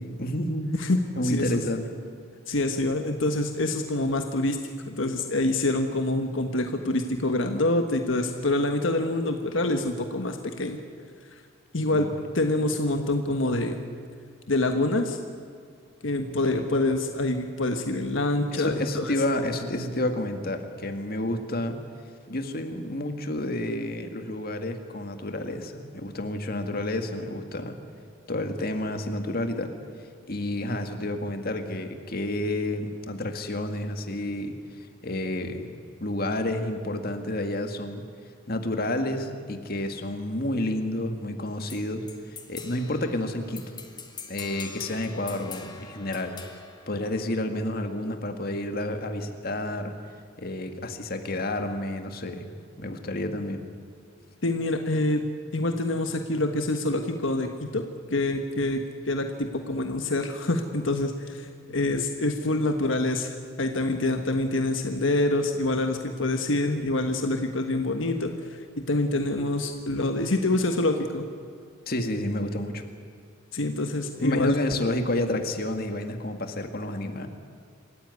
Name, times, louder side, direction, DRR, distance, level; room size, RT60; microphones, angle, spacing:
voice 1, 0.0-0.8 1.2-1.9 11.9-12.1 16.6-16.7 18.5-21.8 22.3-27.8 28.3-29.7 30.3-34.5 35.0-35.7 36.0-38.0 38.5-43.8 44.3-46.3 46.9-49.9 50.4-52.5 52.8-53.6 71.9-72.9 74.2-77.3, left 1 dB, 50° left, 6 dB, 2.0 m, -30 dB
voice 2, 0.8-1.6 2.5-4.6 5.0-10.8 11.3-11.4 11.7-13.8 14.5-15.2 16.0-19.2 54.4-55.3 55.5-71.2 73.5-74.6, left 2 dB, 75° left, 5 dB, 1.4 m, -26 dB
sound 1, 41.7-47.7, left 5 dB, 20° left, 1.9 m, -44 dB
26.5 x 15.0 x 9.7 m, 2.1 s
head